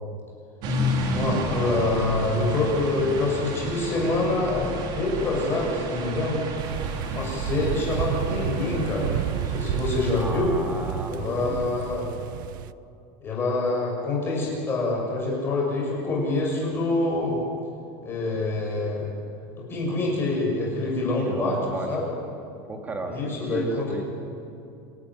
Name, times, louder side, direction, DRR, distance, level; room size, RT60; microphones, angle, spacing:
sound 1, 0.6-10.2, equal, 40° right, 3.1 m, -31 dB
voice 1, 1.1-6.4 7.1-9.2 9.4-10.5 11.1-12.1 13.2-17.4 18.0-19.1 19.6-21.6 21.9-22.0 23.1-23.8, left 2 dB, 20° left, -3 dB, 6.5 m, -26 dB
sound 2, 6.6-12.7, right 13 dB, 75° right, 0.6 m, -31 dB
voice 2, 10.1-11.7 21.3-22.1 22.6-24.0, right 2 dB, 15° right, 3 dB, 2.5 m, -34 dB
27.5 x 13.5 x 9.4 m, 2.6 s
supercardioid pair, 165°, 11 cm